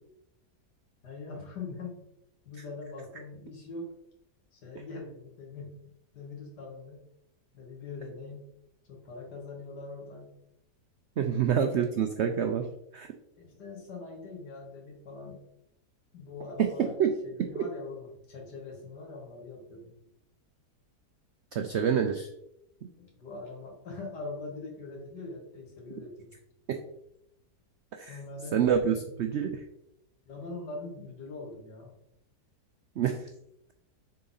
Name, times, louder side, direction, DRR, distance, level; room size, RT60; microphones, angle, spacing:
voice 1, 1.0-2.1 2.5-3.9 4.5-5.7 6.1-7.1 7.5-8.5 8.8-10.4 11.2-11.4 13.4-15.4 16.1-16.9 17.2-19.9 23.0-26.3 28.1-29.0 30.3-31.9, left 3 dB, 80° left, 0 dB, 2.2 m, -42 dB
voice 2, 11.2-12.7 12.9-13.1 17.0-17.1 17.4-17.6 21.5-22.3 28.0-28.2 28.5-29.6 33.0-33.3, right 8 dB, 90° right, 6 dB, 0.6 m, -27 dB
6.6 x 4.0 x 4.0 m, 0.81 s
omnidirectional pair, 1.8 m